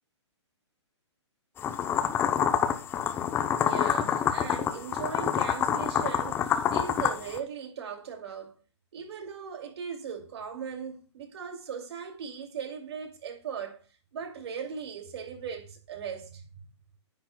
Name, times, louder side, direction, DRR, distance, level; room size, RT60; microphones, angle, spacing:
sound 1, 1.6-7.4, left 8 dB, 15° left, 0.6 m, -27 dB
voice 1, 3.5-8.6 8.9-13.8 14.1-16.5, right 7 dB, 60° right, 2.5 m, -38 dB
10.0 x 9.7 x 2.2 m
hypercardioid pair, 145°, 15 cm